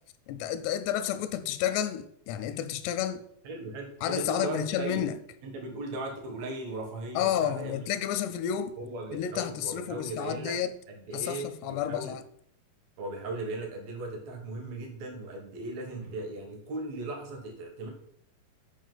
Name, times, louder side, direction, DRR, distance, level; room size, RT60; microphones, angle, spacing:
voice 1, 0.3-3.3 4.0-5.2 7.2-8.8 9.1-10.8 11.1-12.2, left 10 dB, 85° left, 2.7 m, -31 dB
voice 2, 3.4-5.0 5.4-7.8 8.8-10.6 11.0-12.1 13.0-17.9, right 2 dB, 65° right, 1.8 m, -37 dB
8.2 x 4.7 x 3.9 m
omnidirectional pair, 4.7 m